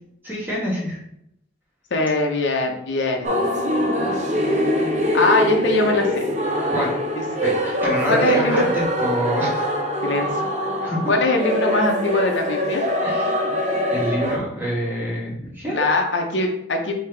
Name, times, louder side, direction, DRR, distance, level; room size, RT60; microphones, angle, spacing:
voice 1, 0.2-1.0 6.7-6.9 7.4-9.7 10.8-11.0 13.0-15.8, equal, 10° right, -7 dB, 1.6 m, -26 dB
voice 2, 1.9-3.4 5.1-6.3 8.1-8.7 10.0-10.4 11.1-12.8 15.7-16.9, left 2 dB, 65° left, 2 dB, 0.8 m, -21 dB
sound 1, 3.2-14.4, equal, 35° right, 0.6 m, -23 dB
5.3 x 2.8 x 3.3 m, 0.76 s
head